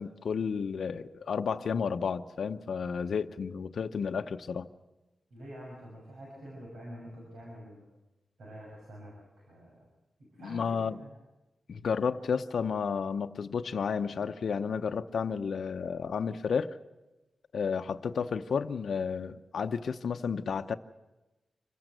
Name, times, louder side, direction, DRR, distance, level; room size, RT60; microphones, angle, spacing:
voice 1, 0.0-4.7 10.4-11.0 11.7-16.7 17.5-20.7, left 6 dB, 70° left, 7 dB, 0.8 m, -32 dB
voice 2, 5.3-7.8 8.4-9.9 10.3-11.1, equal, 85° right, -3 dB, 6.4 m, -47 dB
26.5 x 15.5 x 8.0 m, 1.0 s
wide cardioid pair, 125°, 0 cm